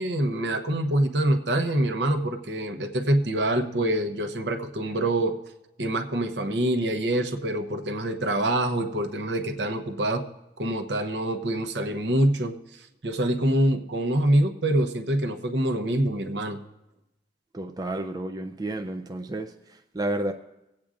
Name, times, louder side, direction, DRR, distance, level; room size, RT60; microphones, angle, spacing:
voice 1, 0.0-5.4 5.8-10.2 10.6-16.6, right 1 dB, 65° right, 5 dB, 0.9 m, -25 dB
voice 2, 17.5-20.3, right 1 dB, 20° right, 4 dB, 0.4 m, -31 dB
23.0 x 8.5 x 2.5 m, 0.93 s
head